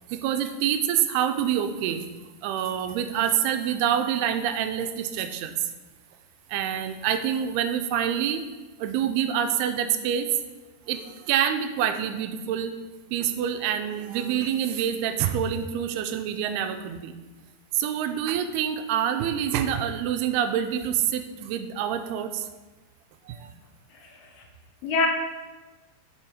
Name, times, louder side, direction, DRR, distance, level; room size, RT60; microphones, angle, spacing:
voice 1, 0.1-2.1 2.4-5.6 6.5-8.4 8.8-10.3 10.9-12.7 13.1-17.2 17.7-22.5 23.3-23.5, right 9 dB, 85° right, 9 dB, 2.6 m, -26 dB
voice 2, 23.9-24.4 24.8-25.1, left 4 dB, 80° left, 2 dB, 2.8 m, -27 dB
7.5 x 5.3 x 4.9 m, 1.2 s
omnidirectional pair, 4.5 m